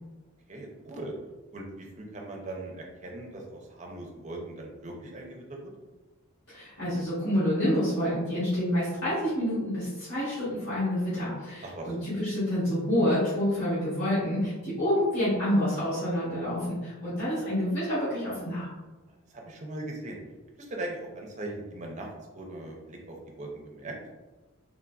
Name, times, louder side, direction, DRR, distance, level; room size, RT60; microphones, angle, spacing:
voice 1, 0.5-1.1 1.5-5.7 11.6-12.0 19.1-20.2 20.6-22.1 22.3-24.0, right 2 dB, 35° right, 0 dB, 0.5 m, -40 dB
voice 2, 6.5-18.7, equal, 65° left, -12 dB, 1.4 m, -28 dB
3.6 x 2.5 x 2.3 m, 1.2 s
head